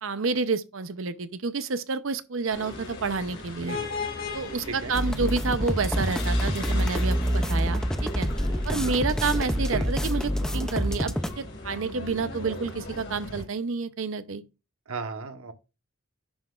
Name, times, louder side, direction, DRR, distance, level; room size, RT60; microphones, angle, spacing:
voice 1, 0.0-3.8 4.3-8.3 8.6-14.4, right 4 dB, 70° right, 0.7 m, -29 dB
sound 1, 2.5-13.4, left 2 dB, 60° left, 3.4 m, -37 dB
sound 2, 4.9-11.3, equal, 5° left, 0.4 m, -26 dB
voice 2, 14.9-15.5, right 4 dB, 85° right, 1.1 m, -35 dB
10.5 x 5.9 x 2.4 m
head